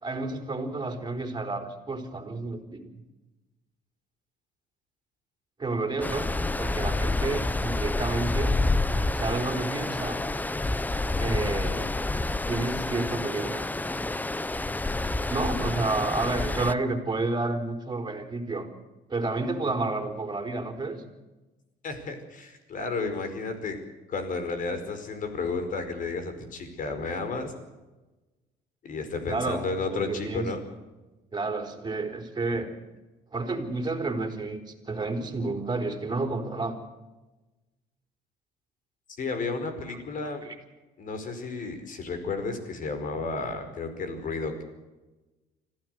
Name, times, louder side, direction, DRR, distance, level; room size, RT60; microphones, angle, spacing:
voice 1, 0.0-2.9 5.6-6.3 6.6-8.6 9.1-10.2 11.2-12.0 12.5-13.6 15.3-18.7 19.1-21.0 29.3-30.5 31.3-32.7 33.3-34.6 34.9-36.8 39.9-40.0 40.4-40.5, right 3 dB, 25° right, 6 dB, 4.1 m, -30 dB
Stream, 6.0-16.7, left 2 dB, 10° left, 0.7 m, -28 dB
voice 2, 21.8-23.8 24.1-27.5 28.8-30.6 39.2-40.4 41.0-44.6, left 3 dB, 50° left, 8 dB, 5.0 m, -32 dB
25.0 x 15.5 x 7.9 m, 1.1 s
cardioid pair, 110°, 17 cm